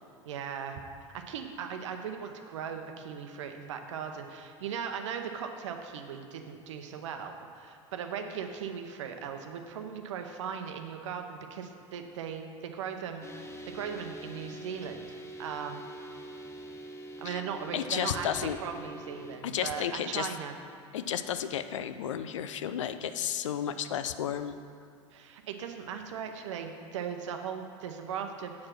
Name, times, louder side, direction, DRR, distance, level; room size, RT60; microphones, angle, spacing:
voice 1, 0.2-0.8 1.1-13.3 13.7-16.2 17.2-20.5 25.1-28.5, right 7 dB, 70° right, 5 dB, 0.8 m, -38 dB
sound 1, 13.2-19.4, right 1 dB, 15° left, 0.9 m, -44 dB
voice 2, 17.7-18.6 19.4-20.3 20.9-24.6, left 9 dB, 80° left, 11 dB, 0.4 m, -32 dB
8.4 x 4.7 x 5.9 m, 2.4 s
hypercardioid pair, 80°, 16 cm